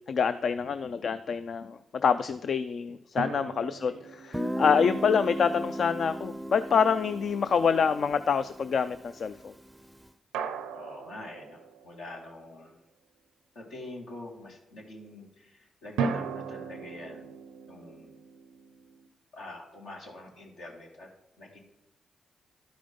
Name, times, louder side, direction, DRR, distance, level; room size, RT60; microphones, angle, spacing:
voice 1, 0.1-9.5, left 6 dB, 65° left, 11 dB, 0.4 m, -26 dB
sound 1, 3.2-6.5 10.3-12.3 16.0-19.1, right 5 dB, 90° right, 0.5 m, -38 dB
voice 2, 3.6-4.0 7.0-7.1 10.7-12.8 13.5-17.3 17.7-18.1 19.3-21.1 21.4-21.6, left 2 dB, 80° left, -1 dB, 2.2 m, -45 dB
Guitar, 4.3-9.9, equal, 10° right, 0.5 m, -36 dB
11.5 x 5.1 x 5.2 m, 0.91 s
supercardioid pair, 45°, 0 cm